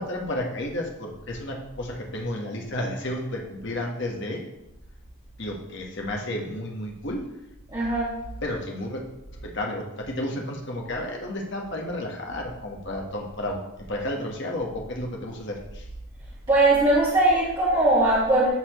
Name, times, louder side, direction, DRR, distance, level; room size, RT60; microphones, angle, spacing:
voice 1, 0.0-4.4 5.4-7.2 8.4-9.0 9.3-15.9, left 1 dB, 55° left, 0 dB, 1.3 m, -32 dB
voice 2, 7.7-8.1 16.5-18.5, right 2 dB, 20° right, -11 dB, 1.9 m, -20 dB
12.5 x 4.3 x 3.0 m, 0.88 s
head